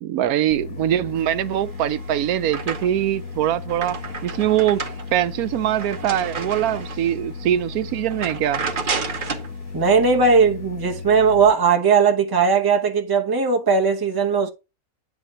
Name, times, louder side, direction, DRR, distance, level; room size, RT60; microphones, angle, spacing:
voice 1, 0.0-4.0 4.2-4.8 5.1-8.6, right 12 dB, 85° right, 1.1 m, -22 dB
sound 1, 0.5-11.5, left 4 dB, 80° left, 1.2 m, -35 dB
sound 2, 1.6-3.2 3.5-7.1 7.6-7.7 8.1-9.5, right 5 dB, 40° right, 1.0 m, -31 dB
voice 2, 9.7-14.5, right 5 dB, 20° right, 0.7 m, -18 dB
9.2 x 3.4 x 5.3 m
omnidirectional pair, 1.5 m